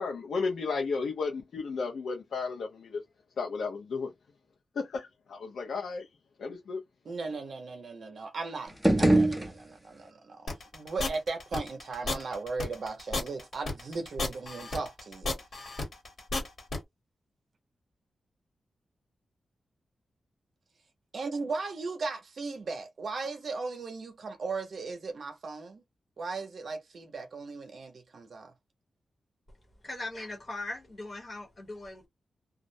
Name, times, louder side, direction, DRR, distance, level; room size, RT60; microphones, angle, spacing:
voice 1, 0.0-3.0 3.4-4.1 4.8-6.1 6.4-6.8, left 4 dB, 90° left, 0.6 m, -33 dB
voice 2, 7.1-15.3 21.1-25.8 26.2-28.5, right 4 dB, 60° right, 0.6 m, -37 dB
sound 1, 8.7-10.1, right 1 dB, ahead, 0.5 m, -25 dB
sound 2, 10.5-16.8, left 2 dB, 65° left, 1.2 m, -33 dB
voice 3, 29.8-32.1, left 2 dB, 40° left, 0.9 m, -39 dB
2.3 x 2.0 x 2.6 m
wide cardioid pair, 140°, 0 cm